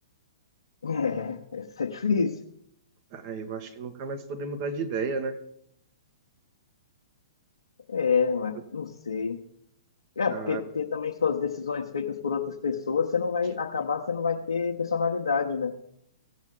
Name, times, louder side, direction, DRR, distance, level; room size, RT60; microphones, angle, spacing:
voice 1, 0.8-2.3 7.9-9.4 10.2-15.7, left 5 dB, 70° left, 0 dB, 0.9 m, -28 dB
voice 2, 3.1-5.4 10.3-10.6, right 4 dB, 35° right, 6 dB, 1.3 m, -33 dB
17.5 x 7.2 x 3.8 m, 0.74 s
figure-of-eight pair, 115°, 3 cm